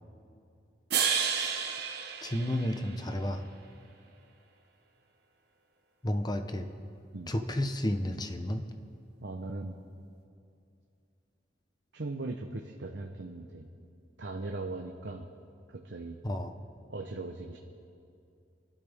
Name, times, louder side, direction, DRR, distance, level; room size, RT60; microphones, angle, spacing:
sound 1, 0.9-3.3, right 7 dB, 60° right, 1.2 m, -31 dB
voice 1, 2.2-3.4 6.0-6.7 7.3-8.6 16.2-16.5, left 1 dB, 25° left, 6 dB, 0.9 m, -31 dB
voice 2, 9.2-9.7 11.9-13.7 14.2-15.3 15.7-16.2 16.9-17.6, right 2 dB, 80° right, 3 dB, 0.9 m, -39 dB
28.5 x 12.0 x 3.6 m, 2.5 s
head